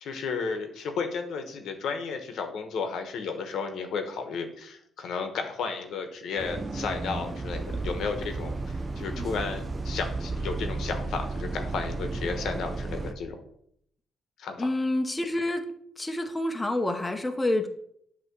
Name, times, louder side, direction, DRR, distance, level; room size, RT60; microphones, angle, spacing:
voice 1, 0.0-13.4 14.4-14.7, left 5 dB, 75° left, 6 dB, 1.0 m, -33 dB
Bus, 6.4-13.1, right 3 dB, 30° right, 0.6 m, -33 dB
voice 2, 14.6-15.7 16.0-17.7, left 1 dB, 15° left, 5 dB, 0.8 m, -28 dB
8.2 x 3.0 x 6.0 m, 0.70 s
cardioid pair, 90°, 0 cm